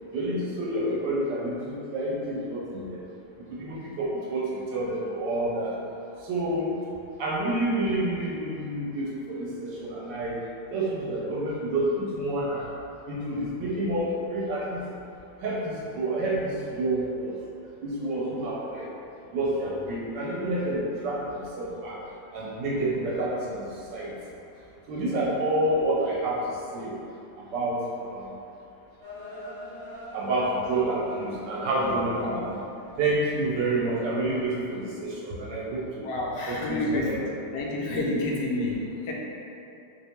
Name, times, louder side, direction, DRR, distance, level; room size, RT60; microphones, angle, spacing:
voice 1, 0.1-3.0 3.5-5.7 6.2-6.8 7.2-10.4 10.7-12.7 13.1-14.8 15.4-17.3 17.8-18.9 19.3-22.0 22.3-24.1 24.9-26.9 27.4-28.4 30.1-32.6 33.0-36.1 36.5-37.2, right 1 dB, 80° right, -6 dB, 1.5 m, -29 dB
sound 1, 29.0-32.8 33.2-33.7, equal, 25° right, 0.6 m, -43 dB
voice 2, 36.0-37.2 37.5-39.1, left 2 dB, 75° left, -3 dB, 1.2 m, -29 dB
4.1 x 2.7 x 3.4 m, 2.7 s
omnidirectional pair, 1.9 m